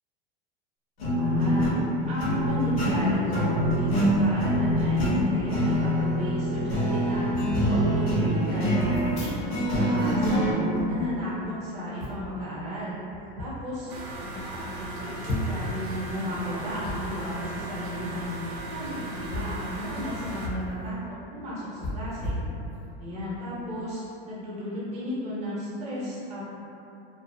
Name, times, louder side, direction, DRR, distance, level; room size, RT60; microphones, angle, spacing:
sound 1, 1.0-10.5, equal, 90° left, 1.0 m, -25 dB
voice 1, 1.2-7.3 7.7-9.3 9.7-13.0 13.4-13.9 14.3-18.4 18.7-22.4 23.0-26.5, equal, 20° right, -8 dB, 0.7 m, -33 dB
sound 2, 4.9-5.2 6.1-6.2 6.4-6.7 7.2-7.8 8.8-9.8 10.1-11.5 12.0-12.3 13.1-13.5 14.0-14.1 14.4-14.5 15.2-15.7 16.8-17.0 18.4-18.6 19.2-20.7 21.0-21.1 21.8-23.0 23.5-23.7, left 1 dB, 40° left, 0.6 m, -35 dB
sound 3, 13.9-20.5, right 1 dB, 85° right, 0.5 m, -37 dB
2.5 x 2.0 x 2.6 m, 2.8 s
supercardioid pair, 140°, 30 cm